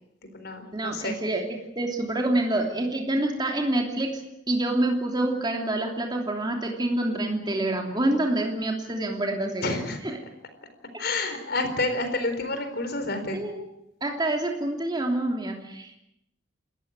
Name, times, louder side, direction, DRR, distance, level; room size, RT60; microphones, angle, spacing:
voice 1, 0.2-1.2 9.6-10.0 11.0-13.4, left 2 dB, 55° left, 8 dB, 4.2 m, -29 dB
voice 2, 0.7-4.2 4.5-9.8 10.0-10.2 11.2-11.4 13.3-13.6 14.0-15.9, right 1 dB, 20° right, 2 dB, 3.0 m, -27 dB
28.5 x 14.5 x 8.9 m, 0.84 s
head